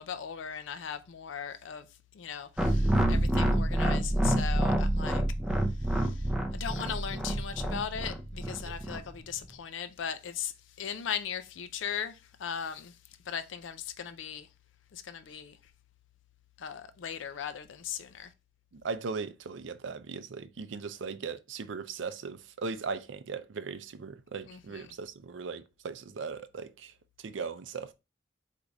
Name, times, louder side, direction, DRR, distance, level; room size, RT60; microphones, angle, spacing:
voice 1, 0.0-1.9 2.1-5.2 5.9-10.5 10.8-13.0 13.3-14.5 14.9-15.6 16.6-18.3 24.5-24.9, left 8 dB, 80° left, 0.4 m, -38 dB
sound 1, 2.6-9.0, right 1 dB, 5° right, 0.5 m, -28 dB
voice 2, 18.7-26.9 27.2-27.9, right 4 dB, 75° right, 0.5 m, -38 dB
4.5 x 2.5 x 3.9 m
head